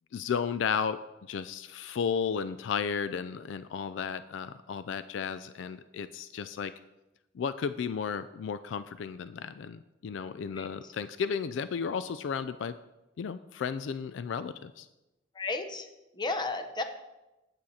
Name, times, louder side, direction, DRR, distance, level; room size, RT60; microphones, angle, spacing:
voice 1, 0.1-1.0 1.3-6.7 7.3-12.8 13.2-14.9, left 6 dB, 70° left, 13 dB, 0.3 m, -33 dB
voice 2, 15.4-15.9 16.2-16.8, left 3 dB, 25° left, 7 dB, 0.8 m, -33 dB
8.7 x 7.9 x 4.2 m, 0.99 s
head